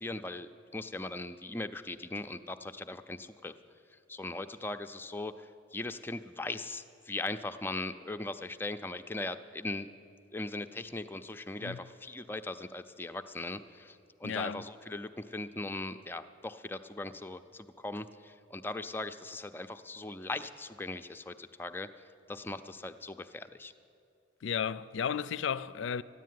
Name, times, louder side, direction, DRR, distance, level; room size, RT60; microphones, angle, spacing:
voice 1, 0.0-3.5 4.1-9.9 10.3-21.9 22.3-23.7, left 2 dB, 10° left, 0.4 m, -39 dB
voice 2, 14.2-14.6 24.4-26.0, left 7 dB, 75° left, 0.4 m, -33 dB
13.5 x 10.0 x 9.3 m
head